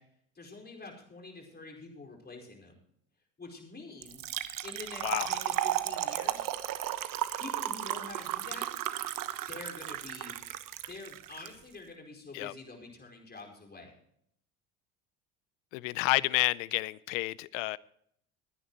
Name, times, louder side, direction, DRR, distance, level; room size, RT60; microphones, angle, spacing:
voice 1, 0.3-2.8 3.4-4.3 4.6-6.4 7.4-8.7 9.5-10.4 10.9-13.9, left 3 dB, 25° left, 4.8 m, -46 dB
Trickle dribble / Fill (with liquid), 4.0-11.5, right 13 dB, 50° right, 1.1 m, -34 dB
voice 2, 15.7-17.8, left 22 dB, 70° left, 0.6 m, -30 dB
22.0 x 10.0 x 3.0 m
hypercardioid pair, 70°, 41 cm